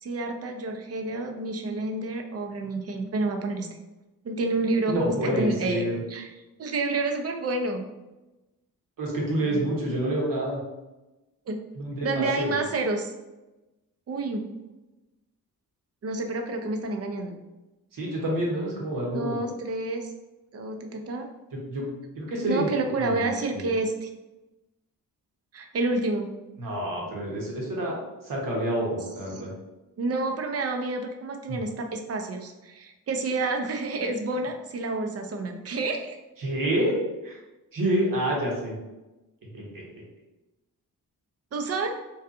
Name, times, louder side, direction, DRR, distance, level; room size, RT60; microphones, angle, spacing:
voice 1, 0.0-3.7 4.2-6.3 6.6-7.9 9.5-9.7 11.5-11.6 12.0-13.1 14.1-14.4 16.0-17.3 19.1-20.1 20.5-21.3 22.5-24.1 25.5-26.3 30.0-36.2 41.5-41.9, right 2 dB, 40° right, 4 dB, 0.5 m, -29 dB
voice 2, 4.9-6.0 9.0-10.6 11.8-12.6 17.9-19.5 21.5-22.7 23.0-23.7 26.6-28.0 28.2-29.5 31.5-31.6 36.4-36.9 37.2-37.4 37.7-38.7 39.5-39.8, right 1 dB, 60° right, -2 dB, 1.0 m, -28 dB
2.7 x 2.3 x 2.4 m, 1.0 s
cardioid pair, 60°, 37 cm